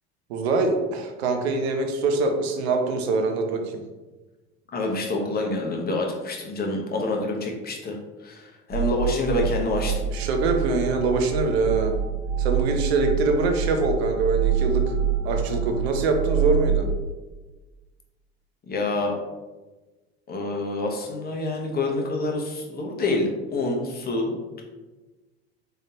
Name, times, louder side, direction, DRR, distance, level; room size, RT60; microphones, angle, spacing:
voice 1, 0.3-3.8 10.1-11.9 12.4-14.9 15.2-16.8, right 3 dB, 80° right, 4 dB, 0.7 m, -24 dB
voice 2, 4.7-10.0 18.7-19.2 20.3-24.6, left 2 dB, 30° left, 1 dB, 1.0 m, -27 dB
sound 1, 8.7-16.9, right 8 dB, 55° right, 1.4 m, -26 dB
3.8 x 3.3 x 2.8 m, 1.2 s
hypercardioid pair, 80°, 31 cm